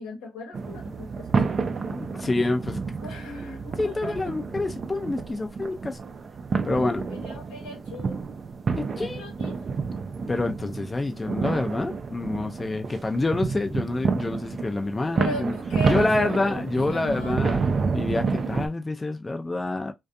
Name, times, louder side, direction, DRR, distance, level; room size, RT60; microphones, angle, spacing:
voice 1, 0.0-1.7 3.0-4.4 7.1-8.2 8.9-9.6 15.2-17.7, left 1 dB, 90° left, 0.9 m, -37 dB
sound 1, 0.5-18.7, right 5 dB, 50° right, 0.4 m, -29 dB
voice 2, 1.9-2.8 3.8-6.0 6.6-7.1 8.8-9.2 10.3-15.5 15.9-17.6 17.9-19.9, left 2 dB, 30° left, 0.4 m, -27 dB
2.5 x 2.2 x 2.5 m
hypercardioid pair, 50°, 0 cm